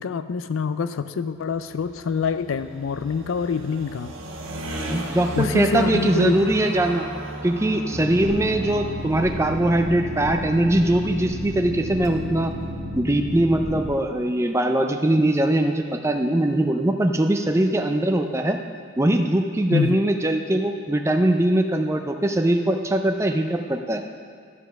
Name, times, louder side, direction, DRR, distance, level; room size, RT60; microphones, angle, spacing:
voice 1, 0.0-4.1 5.4-6.5 19.7-20.0, left 5 dB, 70° left, 12 dB, 0.4 m, -25 dB
sound 1, 1.4-13.0, right 1 dB, 70° right, 1.2 m, -36 dB
voice 2, 4.9-7.1 7.4-12.5 13.0-18.6 19.0-24.0, right 1 dB, 15° right, 4 dB, 0.5 m, -21 dB
Boat Water vehicle, 7.9-13.9, left 1 dB, 30° right, 1.2 m, -32 dB
11.0 x 5.2 x 5.9 m, 2.2 s
head